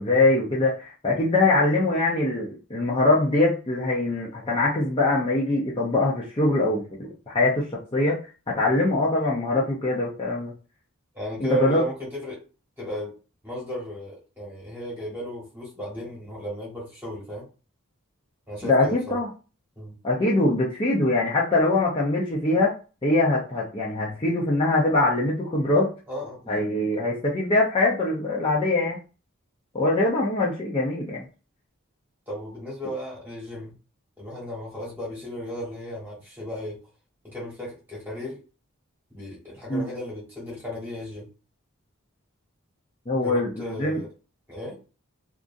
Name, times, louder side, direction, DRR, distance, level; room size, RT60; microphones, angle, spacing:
voice 1, 0.0-7.6 7.9-8.2 8.5-10.5 11.4-11.8 18.6-19.3 20.0-22.7 23.0-25.9 26.5-29.0 29.7-31.2 39.7-39.8 43.1-44.0, left 2 dB, 25° left, 0.5 m, -23 dB
voice 2, 11.1-12.4 12.8-13.2 13.4-17.5 18.5-19.2 19.8-20.0 26.1-26.6 32.3-33.8 34.2-36.8 37.2-38.4 39.1-41.3 43.2-44.1 44.5-44.8, equal, 10° right, 1.1 m, -34 dB
2.8 x 2.4 x 2.5 m
head